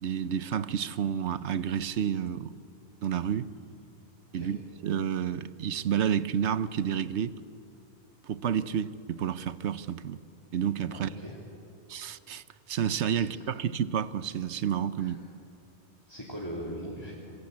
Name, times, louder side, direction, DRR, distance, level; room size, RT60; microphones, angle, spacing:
voice 1, 0.0-2.5 3.0-3.5 4.3-7.4 8.2-10.2 10.5-11.1 11.9-15.2, right 8 dB, 85° right, 1.1 m, -30 dB
voice 2, 10.9-11.4 13.2-13.3 15.0-15.2 16.1-17.2, equal, 20° left, 3.5 m, -39 dB
26.5 x 23.0 x 8.5 m
omnidirectional pair, 1.1 m